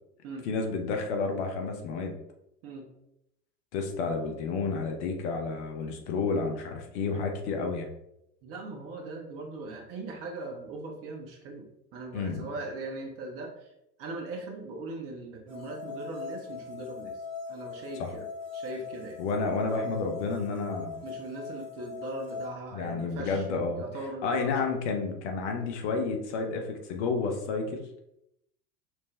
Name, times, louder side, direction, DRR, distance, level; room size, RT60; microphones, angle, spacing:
voice 1, 0.5-2.1 3.7-7.9 12.1-12.5 18.0-18.1 19.2-21.0 22.7-23.8 24.2-27.9, left 4 dB, 45° left, 3 dB, 0.8 m, -30 dB
voice 2, 8.4-13.7 14.0-17.2 17.5-18.2 18.5-19.2 21.0-23.5 23.7-24.6, right 2 dB, 30° right, 1 dB, 0.7 m, -39 dB
sound 1, 15.5-22.5, left 5 dB, 50° right, 1.3 m, -41 dB
5.8 x 2.1 x 3.2 m, 0.81 s
figure-of-eight pair, 85°, 49 cm